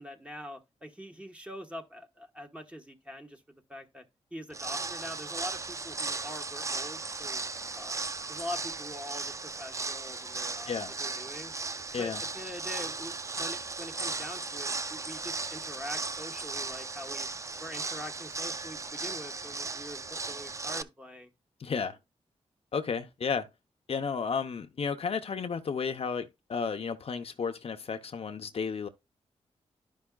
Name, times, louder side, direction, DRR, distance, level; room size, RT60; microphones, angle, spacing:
voice 1, 0.0-3.4 3.7-4.0 4.3-7.4 7.7-8.0 8.3-11.5 12.0-17.3 17.6-21.3, left 1 dB, 10° right, 1.3 m, -43 dB
sound 1, 4.5-20.8, right 3 dB, 25° right, 0.4 m, -36 dB
voice 2, 21.6-22.0 22.7-23.5 23.9-28.9, left 5 dB, 60° left, 0.8 m, -33 dB
11.5 x 5.3 x 2.3 m
cardioid pair, 85°, 12 cm